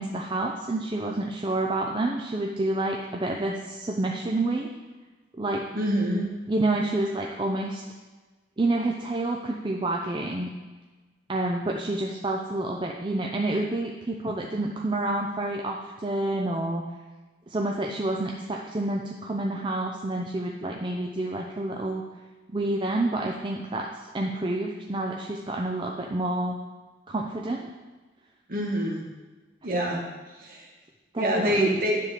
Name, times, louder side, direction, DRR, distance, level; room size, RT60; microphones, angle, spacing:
voice 1, 0.0-4.7 5.4-5.6 6.5-7.8 8.6-10.5 11.3-16.8 17.5-22.0 22.5-23.9 24.1-26.6 27.1-27.7 31.1-31.8, right 2 dB, 25° right, 0 dB, 0.5 m, -28 dB
voice 2, 5.7-6.3 28.5-29.1 29.6-30.0 30.4-30.7 31.2-32.0, equal, 50° right, -1 dB, 1.5 m, -26 dB
9.9 x 3.7 x 6.5 m, 1.3 s
head